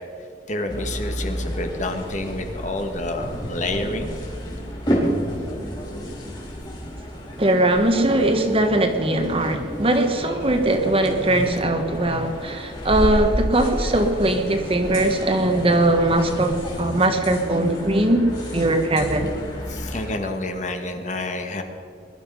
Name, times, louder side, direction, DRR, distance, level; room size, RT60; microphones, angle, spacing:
voice 1, 0.5-4.2 19.7-21.6, left 2 dB, 45° left, 5 dB, 1.5 m, -28 dB
sound 1, 0.7-20.1, equal, 25° left, 3.8 m, -31 dB
voice 2, 7.4-19.3, right 1 dB, 30° right, 5 dB, 1.4 m, -20 dB
20.5 x 11.5 x 5.5 m, 2.3 s
head